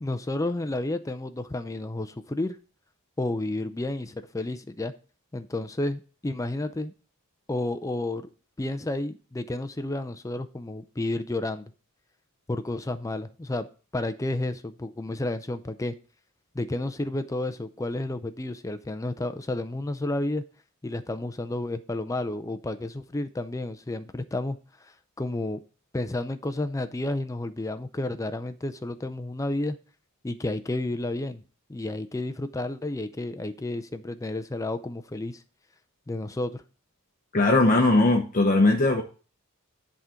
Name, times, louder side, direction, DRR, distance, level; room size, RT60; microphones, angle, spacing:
voice 1, 0.0-2.6 3.2-4.9 5.3-6.9 7.5-8.2 8.6-11.7 12.5-13.7 13.9-15.9 16.5-20.4 20.8-24.6 24.8-24.9 25.2-25.6 25.9-29.8 30.2-31.4 31.7-35.4 36.1-36.6, left 2 dB, 15° left, 0.4 m, -31 dB
voice 2, 37.3-39.0, left 2 dB, 35° left, 0.8 m, -19 dB
10.5 x 3.8 x 5.6 m
head